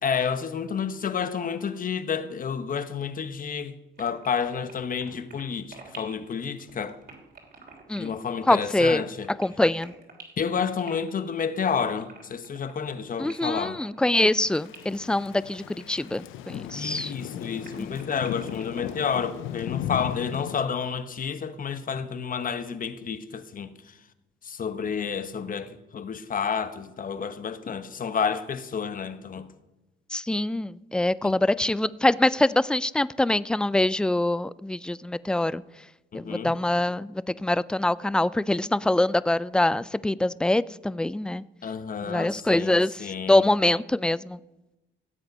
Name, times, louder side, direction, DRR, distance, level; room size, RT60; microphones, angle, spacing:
voice 1, 0.0-7.0 8.0-9.3 10.4-13.8 16.7-24.0 24.4-29.5 31.2-31.4 36.1-36.5 41.6-43.5, left 6 dB, 45° left, 1.0 m, -30 dB
sound 1, 3.9-18.9, right 5 dB, 55° right, 3.2 m, -48 dB
voice 2, 8.5-9.0 9.4-9.9 13.2-17.1 30.1-35.6 36.1-41.4 42.1-44.4, left 1 dB, 5° left, 0.3 m, -24 dB
Thunder / Rain, 14.3-20.6, left 12 dB, 85° left, 0.5 m, -36 dB
16.5 x 7.9 x 5.4 m
cardioid pair, 90°, 20 cm